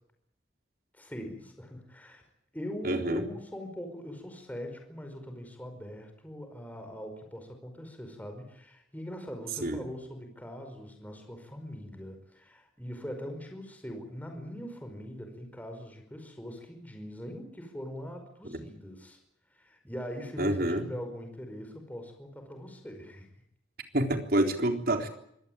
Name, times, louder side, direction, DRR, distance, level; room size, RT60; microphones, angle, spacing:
voice 1, 0.9-2.2 2.5-19.2 19.5-23.3, equal, 10° left, 5 dB, 5.1 m, -42 dB
voice 2, 2.8-3.2 9.6-9.8 20.4-20.9 23.9-25.1, right 1 dB, 55° right, 5 dB, 3.8 m, -27 dB
25.0 x 18.0 x 8.8 m, 0.72 s
head